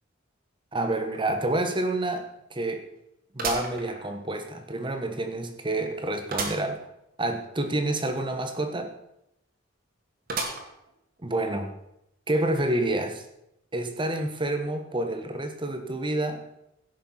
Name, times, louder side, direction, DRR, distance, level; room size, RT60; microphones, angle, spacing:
voice 1, 0.7-2.8 3.3-6.9 7.2-8.9 11.2-11.8 12.3-13.2 13.7-16.4, right 1 dB, 25° right, 6 dB, 1.4 m, -28 dB
sound 1, 1.1-1.2 1.7-1.8 3.4-4.5 5.0-5.1 6.3-6.7 7.1-7.2 7.4-7.5 10.3-10.9 11.5-11.6 12.6-12.7, right 4 dB, 50° right, 2.2 m, -33 dB
16.0 x 6.6 x 5.8 m, 0.82 s
head